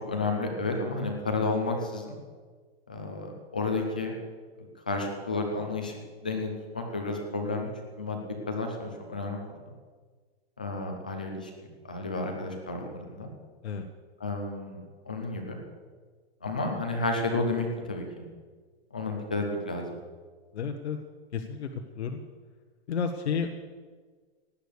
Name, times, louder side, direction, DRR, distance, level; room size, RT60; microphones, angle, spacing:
voice 1, 0.1-2.2 2.9-4.1 4.9-7.7 8.0-8.2 8.5-9.4 10.6-11.5 11.9-13.3 14.2-14.8 15.1-15.6 16.4-18.0 18.9-19.9, left 3 dB, 10° left, 2 dB, 0.3 m, -31 dB
voice 2, 20.5-21.0 21.3-22.2 22.9-23.5, left 6 dB, 85° left, 5 dB, 1.3 m, -31 dB
18.0 x 8.3 x 6.8 m, 1.5 s
hypercardioid pair, 170°, 32 cm